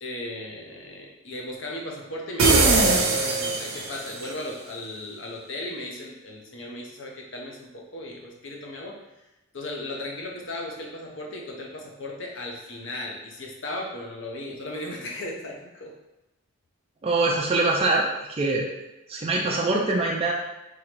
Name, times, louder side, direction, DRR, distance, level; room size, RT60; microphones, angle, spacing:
voice 1, 0.0-9.0 9.5-15.9, left 1 dB, 55° left, -1 dB, 0.7 m, -36 dB
sound 1, 2.4-4.2, right 3 dB, 65° right, 0.6 m, -20 dB
voice 2, 17.0-18.7 19.1-20.3, right 2 dB, 25° right, -2 dB, 0.3 m, -23 dB
3.7 x 2.9 x 3.2 m, 0.97 s
head